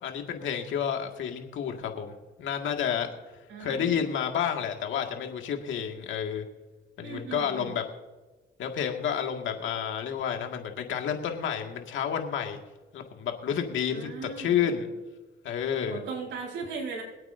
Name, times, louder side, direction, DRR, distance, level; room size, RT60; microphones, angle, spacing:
voice 1, 0.0-2.1 2.4-3.1 3.6-6.4 7.0-7.8 8.6-12.6 12.9-14.9 15.4-16.0, left 8 dB, 75° left, 4 dB, 1.9 m, -30 dB
voice 2, 3.5-4.0 7.0-7.7 13.9-14.9 15.9-17.0, right 5 dB, 70° right, -3 dB, 4.6 m, -38 dB
25.0 x 8.8 x 2.6 m, 1.2 s
cardioid pair, 90°, 20 cm